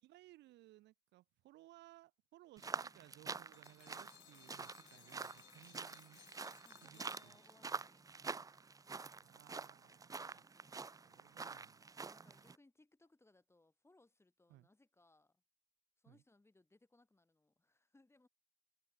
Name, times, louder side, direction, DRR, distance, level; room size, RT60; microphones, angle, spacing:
voice 1, 0.0-6.2 6.8-7.4 9.2-10.5 11.0-11.8 14.5-14.7 16.1-16.2, right 16 dB, 70° right, 1.3 m, -63 dB
Bark, 2.5-3.6 7.2-8.2 9.8-11.3 13.0-13.1 15.0-15.1 16.2-16.3, left 7 dB, 45° left, 4.5 m, -79 dB
sound 1, 2.6-12.6, right 4 dB, 20° right, 0.6 m, -47 dB
sound 2, 3.5-7.8, left 25 dB, 80° left, 0.5 m, -64 dB
voice 2, 6.6-8.4 12.1-15.4 16.0-18.3, left 2 dB, 15° left, 4.3 m, -70 dB
supercardioid pair, 80°, 19 cm